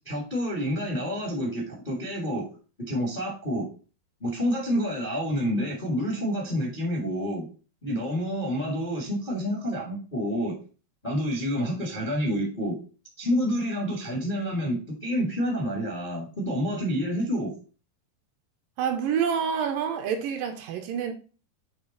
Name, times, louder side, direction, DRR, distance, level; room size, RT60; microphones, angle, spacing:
voice 1, 0.0-2.5 2.8-3.7 4.2-7.5 7.8-10.5 11.0-12.8 13.2-17.5, equal, 55° left, 0.5 m, -28 dB
voice 2, 18.8-21.1, right 7 dB, 75° right, 2.2 m, -27 dB
8.0 x 3.3 x 3.9 m
omnidirectional pair, 4.3 m